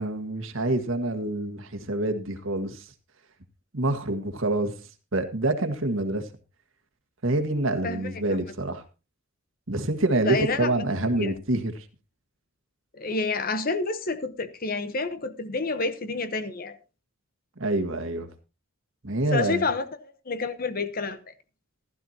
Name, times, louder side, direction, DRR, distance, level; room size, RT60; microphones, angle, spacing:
voice 1, 0.0-2.9 3.7-4.7 5.1-6.3 7.2-8.8 9.7-11.8 17.6-18.3 19.0-19.6, right 2 dB, 70° right, 1.7 m, -26 dB
voice 2, 10.2-10.7 11.2-11.4 13.0-16.8 19.3-19.9 20.3-21.3, left 3 dB, 45° left, 1.0 m, -29 dB
15.0 x 12.5 x 2.9 m
head